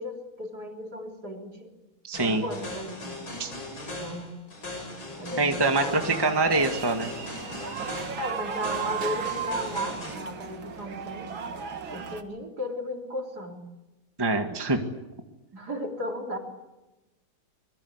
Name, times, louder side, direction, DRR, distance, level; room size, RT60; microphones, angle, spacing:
voice 1, 0.0-1.7 2.2-3.2 4.0-4.3 5.2-6.0 8.2-11.4 11.9-13.6 15.5-16.4, left 1 dB, 55° right, 2 dB, 4.4 m, -35 dB
voice 2, 2.0-2.4 3.4-3.5 5.4-7.1 14.2-14.8, right 3 dB, 10° right, 5 dB, 1.9 m, -24 dB
sound 1, 2.1-10.1, left 2 dB, 90° left, 6.6 m, -39 dB
sound 2, 5.9-12.2, right 7 dB, 90° right, 2.6 m, -35 dB
26.5 x 22.5 x 8.2 m, 1.0 s
omnidirectional pair, 2.1 m